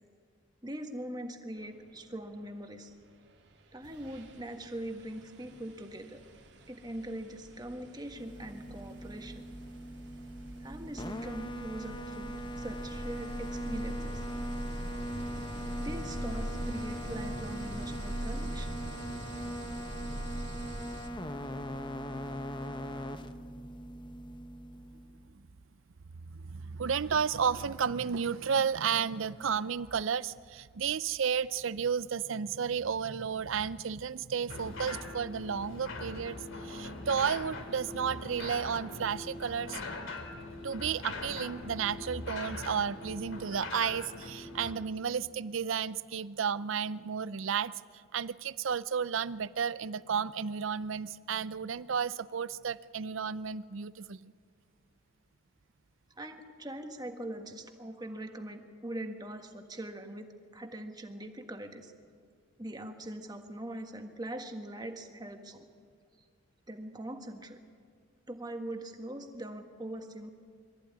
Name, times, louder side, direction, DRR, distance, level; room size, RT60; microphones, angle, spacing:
voice 1, 0.6-2.9 3.7-6.2 6.7-9.4 10.6-14.3 15.8-18.8 56.2-61.9 62.6-65.7 66.7-67.6 68.3-70.3, right 1 dB, 20° right, 5 dB, 1.5 m, -42 dB
sound 1, 3.3-3.5 3.8-21.1, right 1 dB, 55° right, 2.5 m, -42 dB
sound 2, 8.1-25.3, equal, 20° left, 0.9 m, -41 dB
voice 2, 26.3-36.4 36.6-39.8 40.6-47.7 48.1-54.3, right 7 dB, 75° right, 17 dB, 0.5 m, -32 dB
sound 3, 34.5-44.7, left 2 dB, 75° left, 2.6 m, -41 dB
23.5 x 14.5 x 9.6 m, 2.1 s
head